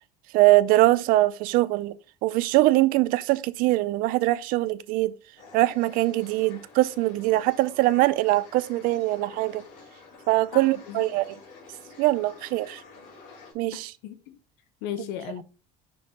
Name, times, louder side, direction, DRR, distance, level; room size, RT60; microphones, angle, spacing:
voice 1, 0.3-1.9 2.2-5.1 5.5-9.6 10.3-11.2 12.0-12.8 13.5-13.9, right 18 dB, 60° right, 0.5 m, -22 dB
sound 1, 5.4-13.5, left 4 dB, 50° left, 3.2 m, -49 dB
voice 2, 10.5-11.1 13.7-14.4 14.8-15.4, left 9 dB, 75° left, 1.1 m, -36 dB
7.1 x 6.2 x 2.9 m
cardioid pair, 170°, 17 cm